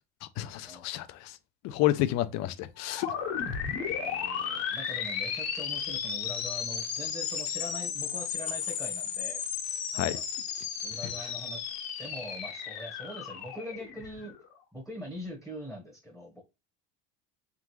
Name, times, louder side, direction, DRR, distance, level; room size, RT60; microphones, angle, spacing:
voice 1, 0.2-1.4 1.6-3.1 9.9-10.2, left 14 dB, 60° left, 0.6 m, -30 dB
sound 1, 2.8-14.5, left 7 dB, 90° left, 1.4 m, -34 dB
voice 2, 3.8-9.4 9.9-10.2 10.8-11.7 12.0-14.3 14.7-16.4, equal, ahead, 1.3 m, -43 dB
3.7 x 3.6 x 3.1 m
supercardioid pair, 105°, 30 cm